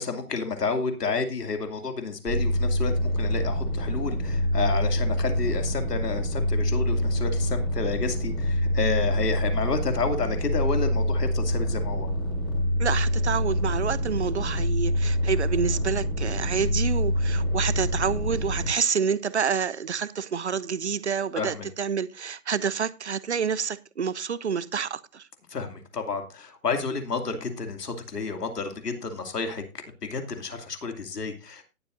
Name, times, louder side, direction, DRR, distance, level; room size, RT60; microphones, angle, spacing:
voice 1, 0.0-12.1 21.4-21.7 25.5-31.6, left 4 dB, 75° left, 2.6 m, -30 dB
sound 1, 2.3-18.7, equal, 10° left, 2.6 m, -26 dB
voice 2, 12.8-25.3, right 6 dB, 45° right, 0.6 m, -28 dB
18.0 x 8.0 x 2.6 m
hypercardioid pair, 170°, 47 cm